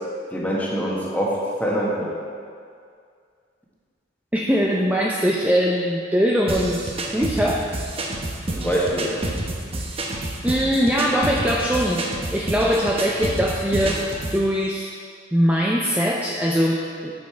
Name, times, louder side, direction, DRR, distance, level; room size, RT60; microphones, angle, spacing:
voice 1, 0.3-2.1 8.6-9.1, equal, 10° left, -5 dB, 1.4 m, -24 dB
voice 2, 4.3-7.7 10.1-14.0 14.3-14.9 15.3-17.1, equal, 10° right, -2 dB, 0.5 m, -22 dB
sound 1, 6.5-14.4, right 1 dB, 30° right, 0.8 m, -29 dB
8.3 x 7.7 x 4.5 m, 2.2 s
head